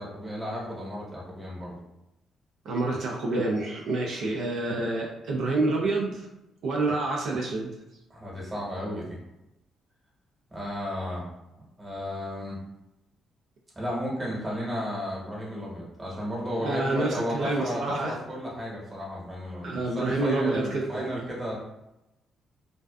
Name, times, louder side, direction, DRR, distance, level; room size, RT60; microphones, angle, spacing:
voice 1, 0.0-1.8 8.1-9.2 10.5-11.2 11.8-12.6 13.7-21.6, equal, 20° right, -4 dB, 1.0 m, -33 dB
voice 2, 2.7-6.3 6.6-7.7 16.6-18.2 19.6-21.1, right 2 dB, 70° right, -2 dB, 0.4 m, -28 dB
2.4 x 2.3 x 2.2 m, 0.89 s
cardioid pair, 90°, 0 cm